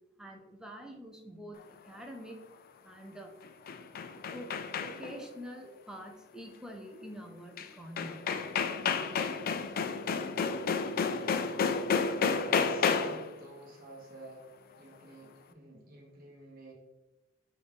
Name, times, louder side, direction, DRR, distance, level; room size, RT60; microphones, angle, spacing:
voice 1, 0.2-2.5 2.8-3.3 4.3-8.3, equal, 5° right, 1 dB, 0.6 m, -46 dB
sound 1, 3.4-5.2 7.6-7.7 8.0-13.3, left 5 dB, 50° left, 0.3 m, -31 dB
voice 2, 12.4-14.4 14.7-16.7, right 1 dB, 50° right, -2 dB, 1.3 m, -52 dB
6.0 x 2.6 x 3.4 m, 1.0 s
head